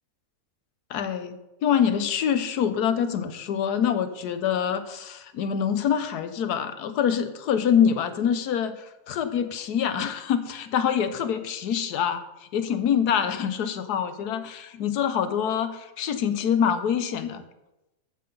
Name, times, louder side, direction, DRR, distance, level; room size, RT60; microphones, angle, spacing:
voice 1, 0.9-1.3 1.6-17.4, left 8 dB, 90° left, 10 dB, 1.4 m, -25 dB
14.0 x 5.8 x 5.4 m, 0.97 s
omnidirectional pair, 1.6 m